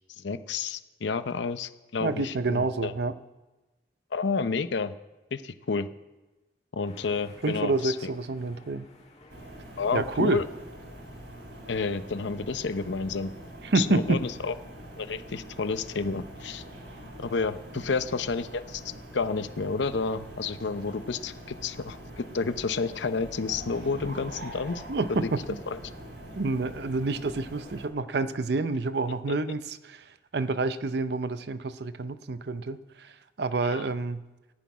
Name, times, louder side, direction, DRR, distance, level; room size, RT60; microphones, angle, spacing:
voice 1, 0.2-2.9 4.1-4.9 5.3-5.9 6.7-8.1 9.8-10.5 11.7-13.3 13.7-14.5 15.0-16.6 17.2-18.8 19.1-24.8 25.1-25.3 25.7-25.8 29.3-29.4 33.6-33.9, left 4 dB, 75° left, 12 dB, 0.6 m, -30 dB
voice 2, 2.0-3.1 7.4-8.9 9.9-10.4 13.6-14.2 24.9-25.2 26.3-30.0 30.3-33.1 33.4-34.2, right 3 dB, 60° right, 13 dB, 0.6 m, -28 dB
sound 1, 6.8-11.7, left 2 dB, 35° left, 1.5 m, -54 dB
sound 2, 9.3-27.9, right 1 dB, 80° right, 3.0 m, -44 dB
14.5 x 6.2 x 9.4 m, 1.1 s
head